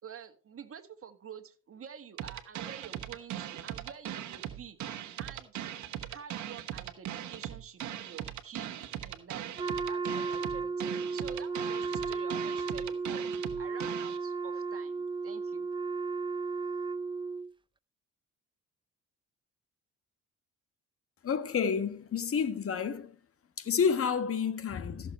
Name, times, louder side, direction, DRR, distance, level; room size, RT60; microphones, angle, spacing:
voice 1, 0.0-4.8 5.2-5.6 6.1-8.8 9.0-9.5 9.9-13.2 13.6-15.7, right 8 dB, 50° right, 1.7 m, -48 dB
sound 1, 2.2-14.2, right 11 dB, 70° right, 1.3 m, -39 dB
Wind instrument woodwind instrument, 9.6-17.5, right 4 dB, 15° right, 0.6 m, -34 dB
voice 2, 21.2-23.1 23.6-25.1, left 6 dB, 50° left, 1.5 m, -30 dB
14.5 x 7.0 x 4.3 m
cardioid pair, 90°, 30 cm